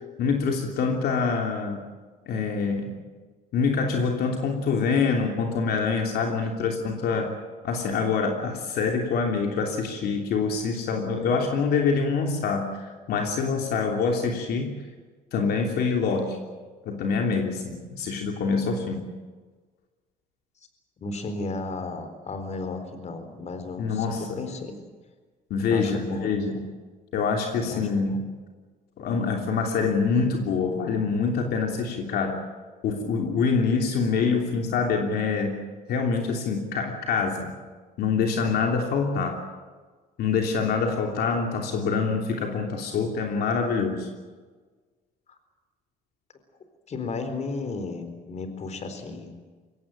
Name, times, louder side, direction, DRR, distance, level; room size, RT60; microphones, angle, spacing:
voice 1, 0.2-1.9 2.3-2.9 3.5-7.3 7.6-14.7 15.3-16.4 16.8-19.1 23.8-24.4 25.5-26.7 27.1-28.2 29.0-32.4 32.8-35.6 35.9-37.5 38.0-39.4 40.2-44.1, left 5 dB, 70° left, 2 dB, 3.1 m, -25 dB
voice 2, 21.0-24.8 25.7-26.4 27.7-27.8 46.9-49.3, left 3 dB, 40° left, 8 dB, 4.1 m, -34 dB
23.0 x 17.5 x 9.0 m, 1.4 s
cardioid pair, 110°, 17 cm